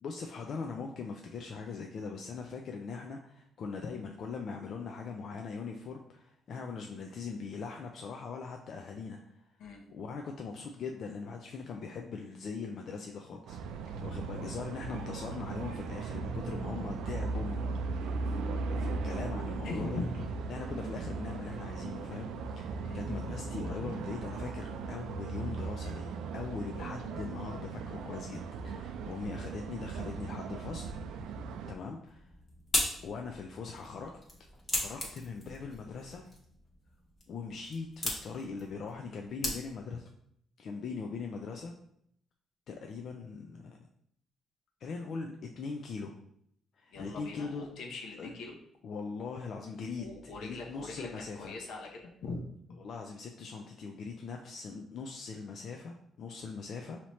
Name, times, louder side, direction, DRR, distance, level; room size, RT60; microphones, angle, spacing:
voice 1, 0.0-9.5 9.9-17.7 18.0-18.4 18.7-20.0 20.5-31.3 31.7-32.3 33.0-34.1 34.7-36.2 37.3-40.0 40.6-41.7 42.7-43.9 44.8-46.1 46.8-47.7 48.2-48.3 48.8-51.6 52.8-57.0, left 5 dB, 55° left, 2 dB, 0.4 m, -41 dB
sound 1, 13.5-31.7, right 4 dB, 90° right, 0.3 m, -38 dB
voice 2, 19.6-20.3 22.8-23.0 46.9-48.5 50.0-51.1 51.3-52.4, left 3 dB, 75° left, 0 dB, 0.9 m, -40 dB
sound 2, 32.0-40.0, left 1 dB, 25° left, 1.1 m, -38 dB
5.6 x 2.8 x 3.1 m, 0.70 s
cardioid pair, 130°, 0 cm